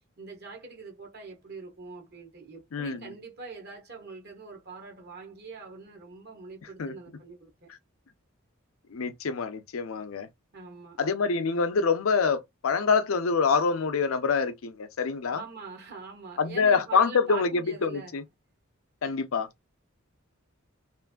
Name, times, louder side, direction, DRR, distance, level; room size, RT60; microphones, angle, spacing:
voice 1, 0.2-7.7 10.5-11.0 15.3-18.1, right 4 dB, 50° right, 1.1 m, -44 dB
voice 2, 2.7-3.0 6.8-6.9 8.9-10.3 11.0-15.4 16.4-17.5 17.8-18.2 19.0-19.5, left 5 dB, 75° left, 0.5 m, -26 dB
3.2 x 2.5 x 2.2 m
head